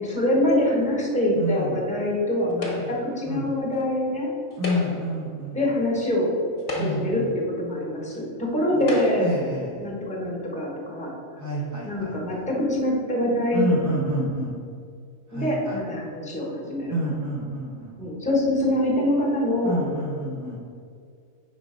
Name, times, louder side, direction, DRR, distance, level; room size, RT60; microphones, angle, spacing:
voice 1, 0.0-4.3 5.5-6.3 6.7-9.3 9.8-11.1 11.8-13.7 15.3-16.9 18.0-19.8, left 1 dB, 5° left, -3 dB, 1.0 m, -24 dB
voice 2, 1.4-1.8 2.8-3.0 3.3-3.5 4.6-5.6 6.8-7.3 9.2-9.8 11.4-12.4 13.5-14.6 15.3-15.8 16.9-18.0 19.6-20.6, equal, 20° right, -6 dB, 0.5 m, -28 dB
sound 1, 2.6-3.1 4.5-5.2 6.0-6.1 6.6-7.3 8.1-8.2 8.8-9.4, left 2 dB, 45° left, 1.2 m, -32 dB
5.0 x 3.9 x 5.0 m, 2.3 s
omnidirectional pair, 1.4 m